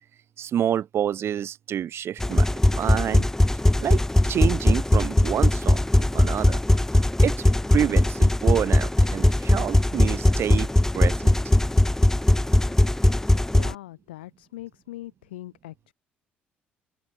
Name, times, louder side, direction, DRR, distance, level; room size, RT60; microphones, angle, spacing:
voice 1, 0.4-3.3 3.8-4.0 4.3-6.6 7.2-7.4 7.7-10.7 10.9-11.4, right 10 dB, 50° right, 1.9 m, -28 dB
sound 1, 2.2-13.7, left 1 dB, 10° left, 0.7 m, -20 dB
voice 2, 13.5-15.9, left 16 dB, 80° left, 2.3 m, -41 dB
open air
figure-of-eight pair, 50°, 5 cm